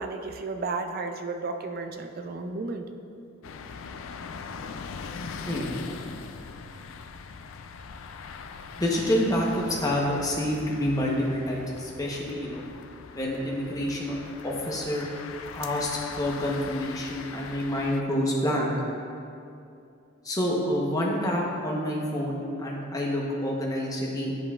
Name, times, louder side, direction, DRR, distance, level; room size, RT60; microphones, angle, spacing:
voice 1, 0.0-2.9, right 3 dB, 45° right, 6 dB, 0.4 m, -33 dB
sound 1, 3.4-18.0, left 5 dB, 80° left, 0.4 m, -41 dB
voice 2, 8.8-12.6 13.1-14.1 14.4-15.1 15.5-18.7 20.2-24.3, left 1 dB, 20° left, -3 dB, 0.8 m, -28 dB
9.8 x 5.4 x 2.3 m, 2.6 s
head